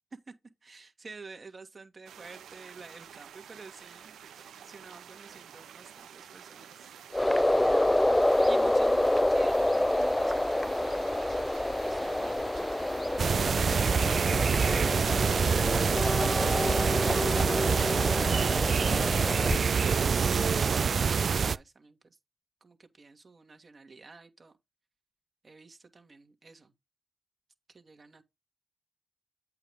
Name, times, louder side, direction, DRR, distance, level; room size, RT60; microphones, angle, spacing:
voice 1, 0.6-6.9 7.3-8.1 8.4-13.3 21.1-22.0 22.6-24.5 25.4-26.7 27.7-28.2, right 4 dB, 50° right, 1.7 m, -51 dB
sound 1, 2.1-19.6, right 8 dB, 90° right, 0.7 m, -49 dB
sound 2, 7.1-19.6, left 1 dB, 15° left, 0.4 m, -27 dB
sound 3, 13.2-21.6, right 6 dB, 65° right, 0.3 m, -26 dB
8.1 x 4.8 x 3.5 m
supercardioid pair, 40°, 0 cm